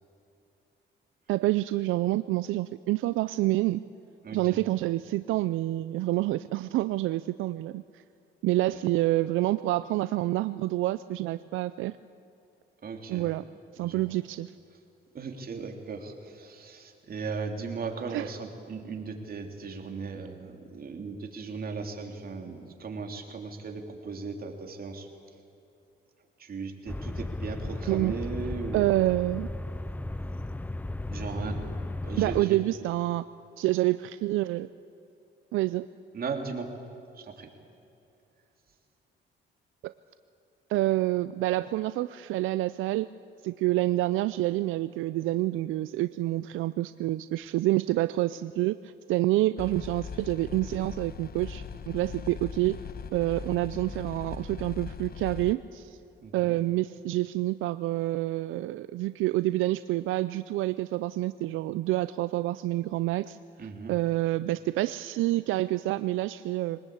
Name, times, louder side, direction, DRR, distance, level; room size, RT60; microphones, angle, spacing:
voice 1, 1.3-3.8 4.3-8.0 8.4-11.9 13.1-13.4 13.7-14.5 18.1-18.3 27.9-28.1 28.7-29.5 32.2-33.2 33.6-34.7 35.5-35.9 39.8-39.9 40.7-43.1 43.4-52.8 53.1-56.0 56.3-63.4 63.9-66.8, right 16 dB, 85° right, 14 dB, 0.5 m, -28 dB
voice 2, 4.2-4.6 12.8-13.3 13.8-14.1 15.1-25.1 26.4-28.9 31.1-32.6 36.1-36.7 37.1-37.5 56.2-56.6 63.6-63.9, right 4 dB, 50° right, 3 dB, 3.3 m, -37 dB
sound 1, 26.9-32.4, left 2 dB, 10° left, 0.4 m, -35 dB
sound 2, 49.6-55.6, left 6 dB, 50° left, 1.1 m, -40 dB
22.5 x 19.5 x 8.5 m, 2.8 s
cardioid pair, 90°, 20 cm